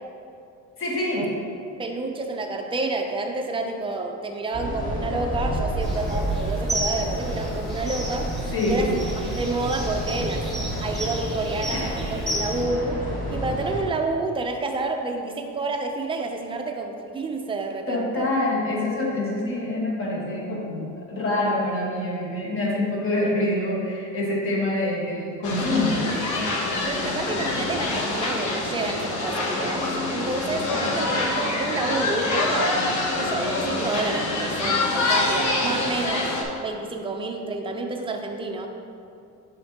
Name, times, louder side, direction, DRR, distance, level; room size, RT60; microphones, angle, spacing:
voice 1, 0.8-1.3 8.5-8.9 11.7-12.1 17.9-26.1, left 1 dB, 45° left, -3 dB, 1.5 m, -26 dB
voice 2, 1.8-8.3 8.7-8.9 9.3-10.5 10.8-13.0 13.3-18.3 26.9-32.8 33.2-36.3 36.6-38.7, right 3 dB, 15° right, 3 dB, 0.4 m, -29 dB
sound 1, 4.5-13.8, right 1 dB, 25° left, 1.3 m, -30 dB
sound 2, 5.8-12.6, right 1 dB, ahead, 1.1 m, -33 dB
sound 3, 25.4-36.4, left 2 dB, 65° left, 1.1 m, -25 dB
7.7 x 5.6 x 2.9 m, 2.5 s
cardioid pair, 150°, 31 cm